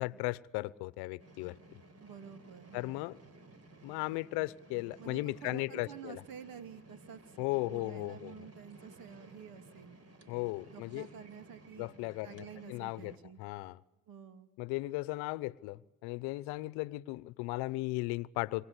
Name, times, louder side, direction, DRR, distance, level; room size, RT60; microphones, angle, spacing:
voice 1, 0.0-1.5 2.7-3.2 3.8-6.2 7.4-8.3 10.3-11.1 11.8-13.1 13.4-13.8 14.6-18.7, left 21 dB, 80° left, 20 dB, 0.9 m, -36 dB
sound 1, 1.2-13.2, right 2 dB, 40° right, 4.3 m, -56 dB
voice 2, 2.0-3.0 5.0-7.4 7.6-10.0 10.7-11.9 12.2-13.4 14.1-14.5, right 7 dB, 60° right, 10 dB, 3.1 m, -50 dB
28.0 x 25.5 x 8.2 m, 0.99 s
supercardioid pair, 75°, 39 cm